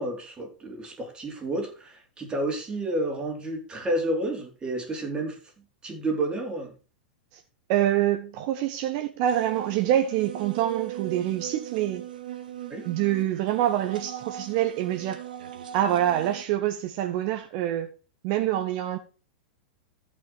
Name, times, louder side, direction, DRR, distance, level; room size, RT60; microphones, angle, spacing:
voice 1, 0.0-5.4 5.8-6.7 12.7-12.8, right 1 dB, 20° right, 4.0 m, -30 dB
voice 2, 7.7-12.0 12.8-15.2 15.7-17.9 18.2-19.0, right 12 dB, 50° right, 1.2 m, -26 dB
sound 1, 9.2-16.4, right 11 dB, 70° right, 1.6 m, -39 dB
14.5 x 5.9 x 4.6 m
hypercardioid pair, 100°, 5 cm